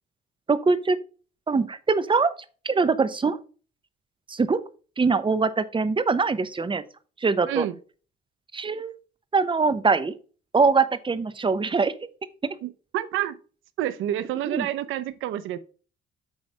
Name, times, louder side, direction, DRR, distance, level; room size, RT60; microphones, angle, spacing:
voice 1, 0.5-1.0 1.5-2.3 2.6-3.4 4.3-4.6 5.0-6.8 7.2-7.7 8.5-8.9 9.3-10.1 10.5-11.9 12.4-12.6 14.5-14.7, right 4 dB, 25° right, 0.8 m, -23 dB
voice 2, 7.5-7.8 12.6-13.4 13.8-15.6, right 12 dB, 85° right, 0.6 m, -29 dB
8.2 x 3.2 x 5.4 m
cardioid pair, 90°, 20 cm